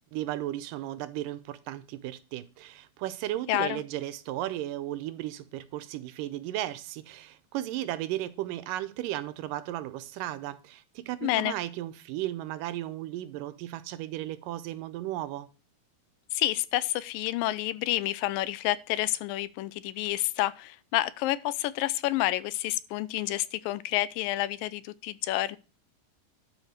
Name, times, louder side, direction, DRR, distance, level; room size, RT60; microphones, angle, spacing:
voice 1, 0.0-15.5, right 14 dB, 75° right, 2.2 m, -35 dB
voice 2, 3.5-3.8 11.2-11.5 16.3-25.6, left 15 dB, 80° left, 2.3 m, -29 dB
12.0 x 5.2 x 6.4 m
omnidirectional pair, 4.1 m